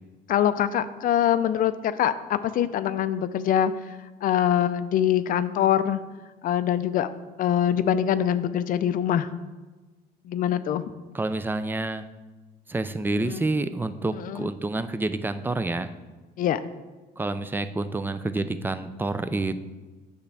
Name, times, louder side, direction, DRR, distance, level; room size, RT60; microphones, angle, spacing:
voice 1, 0.3-3.7 4.2-6.0 6.4-7.1 7.4-9.3 10.3-10.8 13.3-13.4 14.1-14.5 16.4-16.6, left 10 dB, 55° left, 12 dB, 0.4 m, -24 dB
voice 2, 11.1-12.0 12.7-15.9 17.2-19.6, right 2 dB, 10° right, 12 dB, 0.4 m, -28 dB
8.3 x 6.7 x 3.4 m, 1.2 s
cardioid pair, 110°, 17 cm